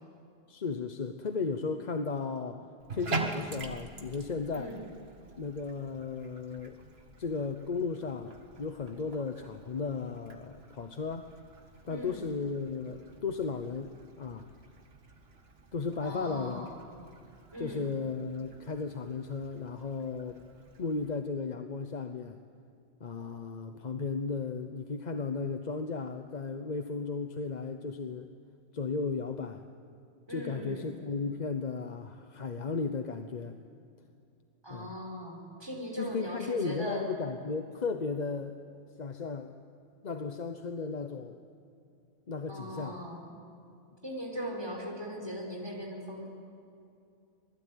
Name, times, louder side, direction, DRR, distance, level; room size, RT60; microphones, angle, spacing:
voice 1, 0.5-2.7 2.9-4.8 5.4-6.8 7.2-11.3 11.8-14.5 15.7-16.7 17.6-20.4 20.8-22.4 23.0-28.3 28.7-29.6 30.3-33.6 34.7-35.0 36.0-38.6 39.0-39.5 40.0-41.4 42.3-43.0, left 4 dB, 40° left, 7 dB, 0.9 m, -35 dB
Bathtub (filling or washing), 2.8-21.1, right 4 dB, 60° right, 2.0 m, -45 dB
voice 2, 11.9-12.3 16.0-16.7 17.5-17.8 30.3-31.0 34.6-37.1 42.5-43.4 44.0-46.3, equal, 20° right, -1 dB, 4.8 m, -39 dB
26.5 x 20.5 x 9.2 m, 2.6 s
omnidirectional pair, 1.2 m